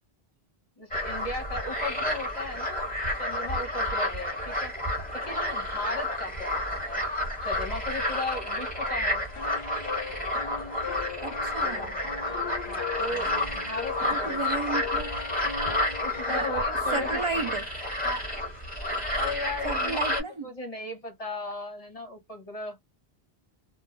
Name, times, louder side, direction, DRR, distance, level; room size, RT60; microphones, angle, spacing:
voice 1, 0.8-2.8 3.2-4.7 5.1-7.0 7.4-9.2 12.7-14.6 16.0-17.2 18.0-18.3 19.1-22.8, left 2 dB, 35° left, 1.1 m, -36 dB
sound 1, 0.9-20.2, left 1 dB, 10° left, 1.3 m, -30 dB
sound 2, 8.9-16.5, left 7 dB, 70° left, 0.8 m, -39 dB
voice 2, 11.2-12.0 14.1-15.1 16.3-16.5 16.9-17.7 19.6-20.5, right 4 dB, 55° right, 0.3 m, -33 dB
2.4 x 2.2 x 2.9 m
omnidirectional pair, 1.1 m